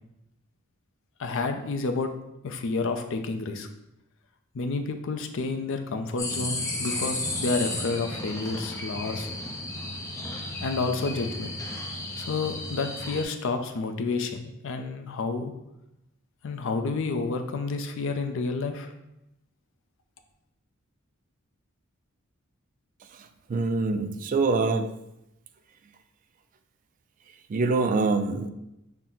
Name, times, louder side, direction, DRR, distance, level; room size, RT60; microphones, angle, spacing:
voice 1, 1.2-2.1 2.4-3.7 4.5-9.3 10.6-11.5 12.2-15.5 16.4-18.9, left 3 dB, 65° left, 6 dB, 0.5 m, -30 dB
sound 1, 6.2-13.2, left 2 dB, 15° left, 0.5 m, -33 dB
voice 2, 23.5-24.9 27.5-28.5, right 3 dB, 40° right, 8 dB, 0.3 m, -24 dB
5.7 x 2.1 x 3.8 m, 0.88 s
head